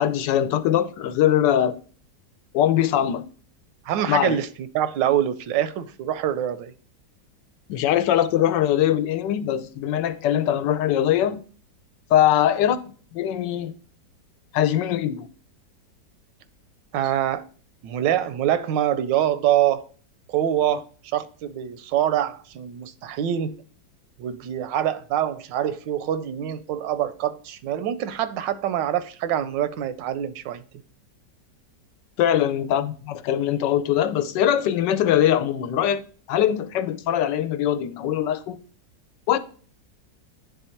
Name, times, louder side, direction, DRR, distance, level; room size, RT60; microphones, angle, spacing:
voice 1, 0.0-1.8 2.5-3.2 4.1-4.4 7.7-11.4 12.1-12.8 13.1-13.7 14.5-15.3 20.7-20.8 32.2-36.0 36.3-38.6 39.3-39.4, left 11 dB, 85° left, 1.3 m, -22 dB
voice 2, 3.8-6.7 16.9-17.5 17.8-19.9 20.3-23.6 24.2-30.6, right 11 dB, 85° right, 1.3 m, -25 dB
9.6 x 3.5 x 4.4 m
omnidirectional pair, 1.9 m